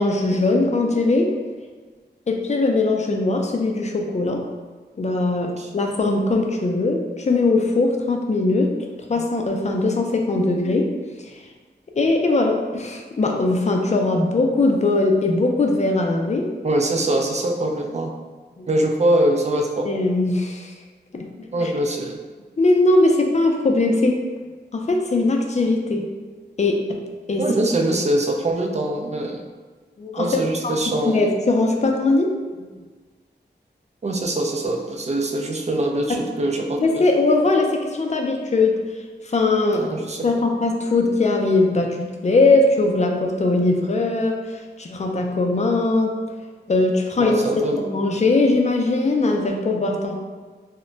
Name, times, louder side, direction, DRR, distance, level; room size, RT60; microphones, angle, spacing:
voice 1, 0.0-1.3 2.3-4.5 5.0-8.7 9.1-10.9 11.2-11.4 12.0-16.5 18.6-18.7 19.8-20.8 21.1-21.7 22.6-24.2 24.7-26.0 26.6-27.0 27.3-27.5 30.0-32.3 32.6-32.7 36.1-36.2 36.8-38.8 39.2-39.9 40.2-46.1 46.7-50.2, left 2 dB, 40° left, 2 dB, 0.4 m, -20 dB
voice 2, 16.6-18.1 18.7-19.9 21.5-22.2 27.4-29.4 30.2-31.2 34.0-37.0 39.7-40.2 47.2-47.8, right 1 dB, 40° right, 2 dB, 0.4 m, -23 dB
2.1 x 2.1 x 3.8 m, 1.4 s
wide cardioid pair, 75°, 18 cm